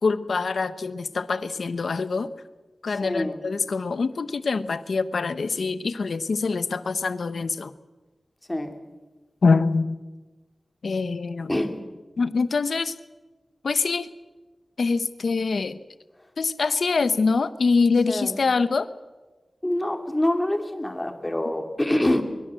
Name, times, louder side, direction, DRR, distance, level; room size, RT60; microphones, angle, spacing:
voice 1, 0.0-2.3 2.8-7.7 9.4-10.0 10.8-11.5 12.2-12.9 13.6-14.1 14.8-15.8 16.4-18.9, left 4 dB, 80° left, 13 dB, 1.1 m, -24 dB
voice 2, 3.0-3.4 8.5-8.8 11.5-11.7 18.1-18.4 19.6-22.2, left 1 dB, 15° left, 5 dB, 2.9 m, -25 dB
23.0 x 22.5 x 7.7 m, 1.2 s
wide cardioid pair, 100°, 0 cm